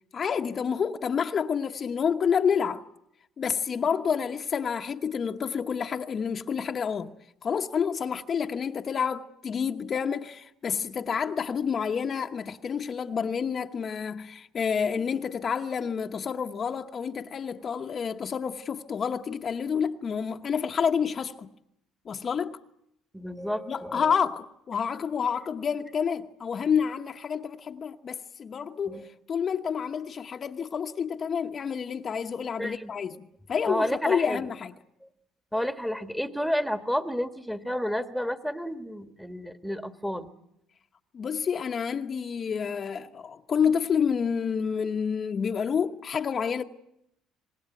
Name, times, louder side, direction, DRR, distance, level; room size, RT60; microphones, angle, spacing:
voice 1, 0.1-2.8 3.4-7.1 7.4-21.5 22.1-22.6 23.7-29.0 29.3-34.7 41.1-46.6, left 7 dB, 40° left, 1.0 m, -29 dB
voice 2, 23.1-24.1 28.9-29.0 32.6-32.9 33.7-34.4 35.5-40.3, equal, ahead, 1.5 m, -30 dB
26.5 x 19.5 x 9.2 m
supercardioid pair, 90°, 0 cm